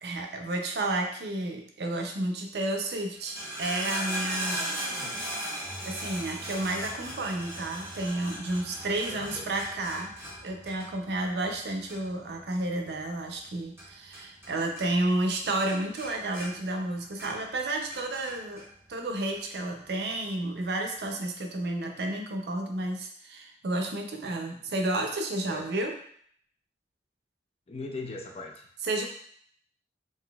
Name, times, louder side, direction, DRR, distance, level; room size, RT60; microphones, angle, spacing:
voice 1, 0.0-4.6 5.9-10.1 10.4-18.6 18.9-25.9 28.8-29.1, right 2 dB, 70° right, 3 dB, 0.5 m, -31 dB
sound 1, 3.1-14.5 14.8-15.3 15.6-17.6 17.9-18.7 19.3-19.4, right 1 dB, 15° right, 0.8 m, -38 dB
voice 2, 4.5-5.3 9.1-9.5 24.5-24.6 25.4-25.7 27.7-28.7, left 3 dB, 35° left, 1 dB, 0.4 m, -41 dB
3.8 x 2.6 x 2.3 m, 0.62 s
head